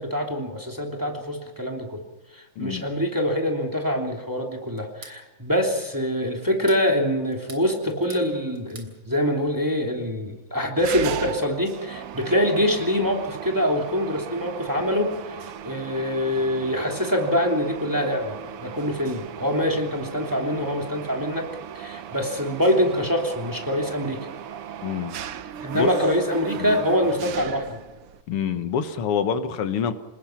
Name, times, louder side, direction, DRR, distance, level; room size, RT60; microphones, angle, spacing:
voice 1, 0.0-2.0 2.3-21.5 21.7-24.3 25.6-27.8, equal, 10° right, 2.9 m, -25 dB
voice 2, 2.6-2.9 24.8-25.1 25.7-25.9 26.6-26.8 28.3-29.9, left 7 dB, 85° left, 2.2 m, -26 dB
sound 1, 4.8-5.2 6.4-6.9 7.3-8.3 8.5-8.9, right 4 dB, 60° right, 4.1 m, -44 dB
Mechanisms, 10.8-28.2, right 9 dB, 85° right, 2.0 m, -37 dB
27.5 x 19.5 x 5.9 m
omnidirectional pair, 2.4 m